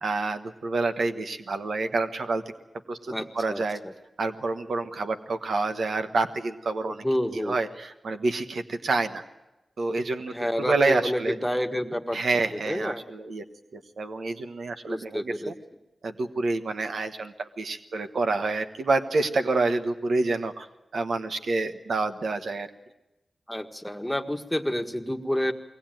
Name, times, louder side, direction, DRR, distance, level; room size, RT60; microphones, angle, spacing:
voice 1, 0.0-2.4 2.9-3.8 4.2-7.0 7.3-9.2 9.8-11.3 12.1-13.4 13.7-15.5 16.0-20.7 20.9-22.7, right 3 dB, 85° right, 8 dB, 1.1 m, -28 dB
voice 2, 3.1-3.9 6.9-7.6 10.3-12.2 12.5-13.0 14.9-15.5 23.5-25.5, equal, 5° left, 7 dB, 1.5 m, -29 dB
22.0 x 17.5 x 9.1 m, 1.0 s
cardioid pair, 50°, 0 cm